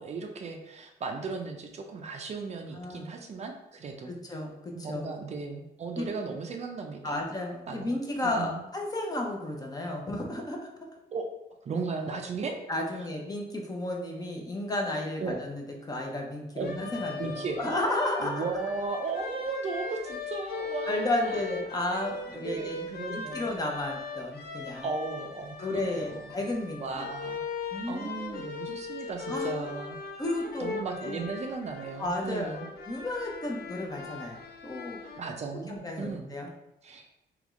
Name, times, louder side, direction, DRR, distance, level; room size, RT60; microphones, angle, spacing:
voice 1, 0.0-4.1 4.7-7.2 7.7-7.9 8.2-8.6 11.1-11.2 11.6-12.5 15.2-15.4 16.5-16.8 17.2-17.7 18.2-21.4 22.3-23.5 24.8-26.3 26.8-27.4 27.9-30.0 30.6-32.7 35.2-36.3 36.8-37.1, right 4 dB, 40° right, 3 dB, 0.5 m, -36 dB
voice 2, 2.7-3.1 4.1-5.1 6.0-6.1 7.0-10.6 12.7-18.4 20.9-24.9 25.6-27.1 27.7-28.4 29.3-29.7 30.2-30.7 31.0-31.3 32.0-35.0 35.7-36.5, left 1 dB, 25° left, 0 dB, 0.7 m, -33 dB
sound 1, 16.6-35.2, left 4 dB, 70° left, 0.6 m, -39 dB
3.4 x 3.0 x 3.6 m, 0.87 s
cardioid pair, 130°, 16 cm